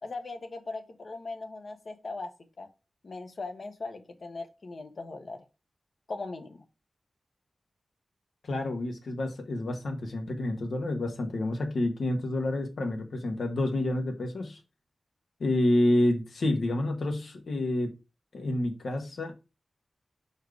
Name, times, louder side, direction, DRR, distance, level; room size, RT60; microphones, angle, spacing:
voice 1, 0.0-2.3 2.6-2.7 3.0-5.4 6.1-6.6, left 3 dB, 60° left, 1.0 m, -39 dB
voice 2, 8.4-14.6 15.4-18.0 18.3-19.3, left 1 dB, 85° left, 1.2 m, -28 dB
5.0 x 4.6 x 4.6 m
wide cardioid pair, 95°, 0 cm